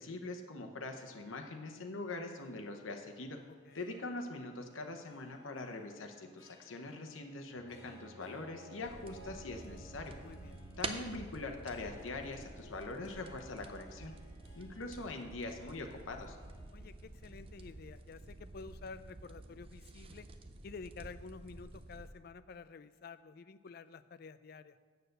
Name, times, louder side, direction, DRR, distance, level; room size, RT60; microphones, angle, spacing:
voice 1, 0.0-3.4 3.7-10.1 10.8-14.1 14.6-16.4, left 2 dB, 85° left, 4 dB, 0.8 m, -43 dB
Harp, 0.9-19.4, equal, 20° left, 1.6 m, -62 dB
Bowed string instrument, 7.5-12.9, equal, 55° right, 1.9 m, -56 dB
sound 1, 8.8-22.1, right 3 dB, 30° right, 0.5 m, -49 dB
voice 2, 10.2-10.6 16.7-20.3 20.6-24.8, left 4 dB, 50° left, 14 dB, 0.3 m, -50 dB
8.0 x 6.7 x 6.6 m, 1.5 s
head